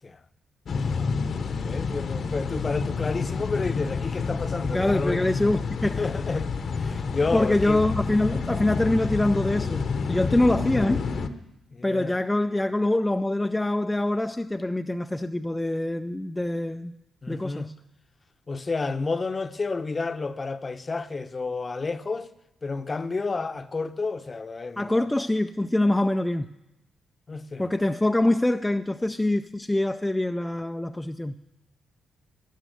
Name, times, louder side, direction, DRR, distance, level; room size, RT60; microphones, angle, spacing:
sound 1, 0.7-11.3, left 5 dB, 55° left, 1.0 m, -29 dB
voice 1, 1.5-5.4 5.8-7.8 11.7-12.2 17.2-17.7 18.5-22.3 22.6-25.1 27.3-27.7, left 3 dB, 30° left, 0.8 m, -30 dB
voice 2, 4.7-6.0 7.3-9.8 10.1-11.0 11.8-16.9 17.3-17.7 24.8-26.5 27.6-31.4, left 1 dB, 10° left, 0.4 m, -24 dB
13.0 x 10.5 x 8.0 m
cardioid pair, 85°, 0 cm